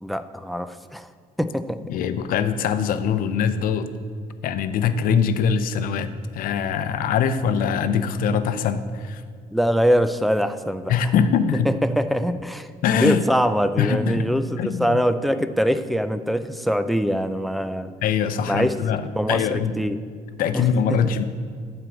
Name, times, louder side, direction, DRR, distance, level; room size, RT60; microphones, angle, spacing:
voice 1, 0.0-1.1 1.4-1.8 9.5-10.9 11.7-17.9 18.5-20.0 20.5-21.1, equal, ahead, 11 dB, 0.3 m, -23 dB
voice 2, 1.9-3.9 4.4-9.2 10.9-11.7 12.8-13.2 13.8-14.3 14.6-15.0 18.0-19.0 19.3-19.8 20.4-21.2, left 7 dB, 65° left, 11 dB, 0.7 m, -22 dB
11.5 x 4.6 x 8.0 m, 2.1 s
cardioid pair, 165°, 16 cm